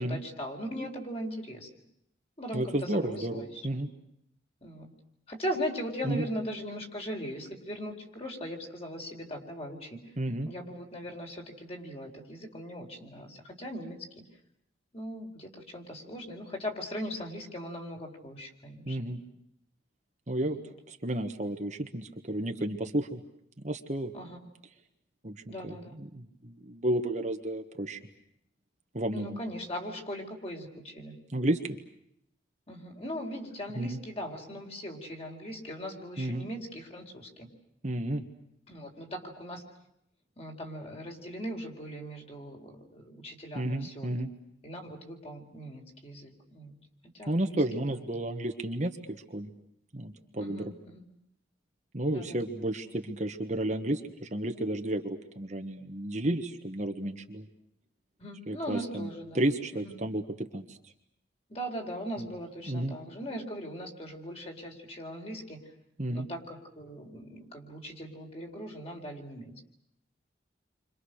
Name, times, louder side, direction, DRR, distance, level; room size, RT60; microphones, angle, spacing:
voice 1, 0.0-1.7 2.4-3.8 4.6-4.9 5.3-10.0 10.4-14.2 14.9-19.1 20.4-20.6 24.1-24.4 25.5-25.9 29.1-31.2 32.7-37.5 38.7-39.6 40.4-44.1 44.6-46.7 47.1-47.9 50.4-51.0 52.1-52.4 58.2-59.4 59.7-60.0 61.5-65.6 66.1-69.6, equal, 35° left, 2 dB, 4.2 m, -39 dB
voice 2, 2.5-3.9 6.0-6.3 10.2-10.5 18.9-19.2 20.3-20.6 20.9-23.2 23.6-24.1 25.2-28.0 28.9-29.4 31.3-31.6 33.7-34.0 36.2-36.5 37.8-38.3 43.5-44.3 47.3-49.5 49.9-50.6 51.9-57.5 58.5-59.1 59.3-60.8 62.7-63.0 66.0-66.3, right 1 dB, 40° right, 5 dB, 1.5 m, -32 dB
30.0 x 25.5 x 6.5 m, 0.77 s
head